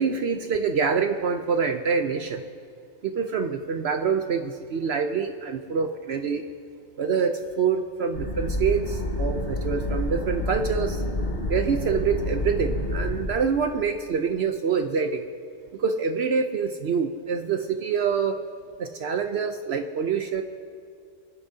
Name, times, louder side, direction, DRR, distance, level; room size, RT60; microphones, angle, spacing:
voice 1, 0.0-2.4 3.0-6.4 7.0-11.0 11.5-15.3 15.8-18.4 18.8-20.4, right 6 dB, 60° right, 6 dB, 0.8 m, -26 dB
sound 1, 8.1-13.3, left 1 dB, 90° left, 2.4 m, -28 dB
30.0 x 10.5 x 2.7 m, 2.4 s
omnidirectional pair, 1.4 m